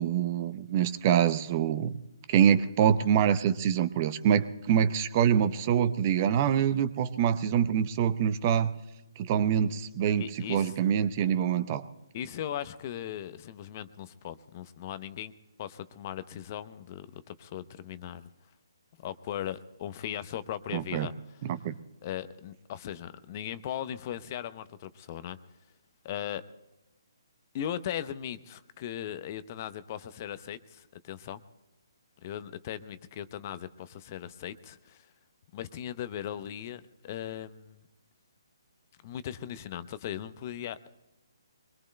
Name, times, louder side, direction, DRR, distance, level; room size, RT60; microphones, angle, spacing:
voice 1, 0.0-2.0 2.3-8.7 9.2-11.8 20.7-21.1 21.4-21.8, right 9 dB, 35° right, 14 dB, 0.6 m, -25 dB
voice 2, 10.1-10.7 12.1-15.3 15.6-18.3 19.0-21.1 22.0-25.4 26.0-26.4 27.5-31.4 32.2-35.0 35.5-37.8 39.0-40.8, left 10 dB, 35° left, 14 dB, 0.6 m, -38 dB
24.5 x 21.0 x 2.2 m, 1.0 s
figure-of-eight pair, 140°, 2 cm